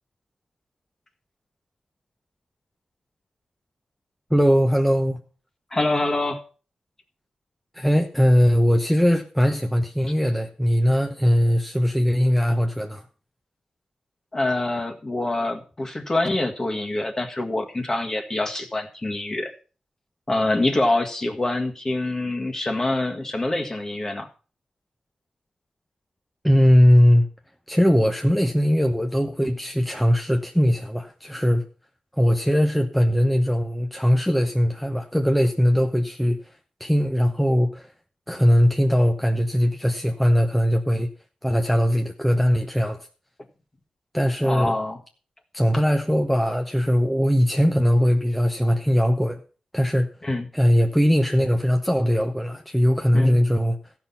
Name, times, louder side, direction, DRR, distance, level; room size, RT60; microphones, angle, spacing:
voice 1, 4.3-5.2 7.7-13.0 26.4-27.3 27.7-31.6 32.2-36.4 36.8-37.9 38.3-41.1 41.4-43.1 44.1-44.7 45.5-49.4 49.7-50.1 50.5-53.8, equal, ahead, 3 dB, 1.0 m, -20 dB
voice 2, 5.7-6.4 14.3-19.5 20.3-24.3 44.4-45.0 50.2-50.5 53.1-53.4, left 2 dB, 25° left, 4 dB, 1.7 m, -25 dB
14.5 x 6.0 x 5.7 m, 0.37 s
wide cardioid pair, 105°, 2 cm